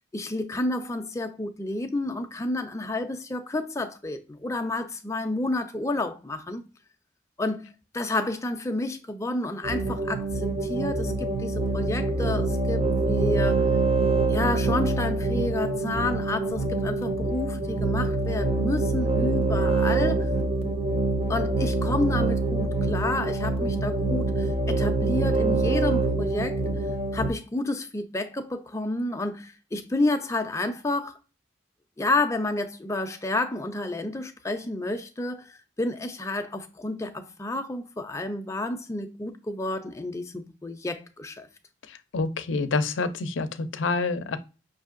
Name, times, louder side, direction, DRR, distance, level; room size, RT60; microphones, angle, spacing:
voice 1, 0.1-6.6 7.4-7.6 7.9-13.6 14.3-20.3 21.3-26.6 27.1-31.1 32.0-35.5 35.8-41.5, left 2 dB, 15° left, 0.4 m, -30 dB
sound 1, 9.6-27.3, right 3 dB, 30° right, 0.6 m, -25 dB
voice 2, 42.1-44.4, left 3 dB, 90° left, 0.5 m, -27 dB
5.7 x 2.7 x 2.4 m
head